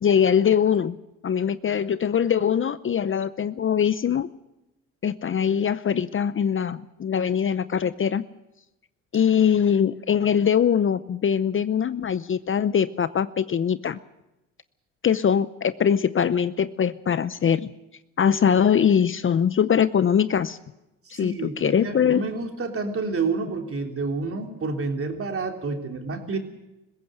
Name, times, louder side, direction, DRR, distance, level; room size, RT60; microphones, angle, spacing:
voice 1, 0.0-1.0 1.2-4.3 5.0-8.2 9.1-14.0 15.0-17.7 18.2-20.6 21.1-22.2, left 8 dB, 35° left, 15 dB, 0.7 m, -22 dB
voice 2, 21.0-26.4, right 4 dB, 40° right, 3 dB, 3.4 m, -29 dB
20.5 x 16.0 x 7.9 m, 0.94 s
supercardioid pair, 75°, 34 cm